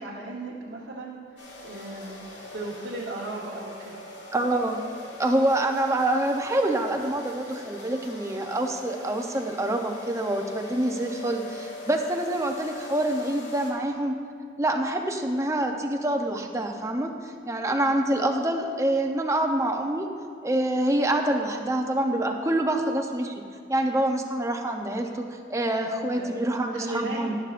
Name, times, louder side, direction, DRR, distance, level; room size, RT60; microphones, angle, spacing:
voice 1, 0.0-4.0 26.1-26.4 26.7-27.4, right 2 dB, 80° right, -5 dB, 1.2 m, -36 dB
sound 1, 1.4-13.7, left 2 dB, 65° left, 2.6 m, -42 dB
voice 2, 4.3-4.8 5.2-14.2 14.6-20.1 20.4-23.3 23.7-27.4, right 1 dB, 15° right, 3 dB, 0.6 m, -26 dB
13.0 x 11.0 x 2.5 m, 2.4 s
head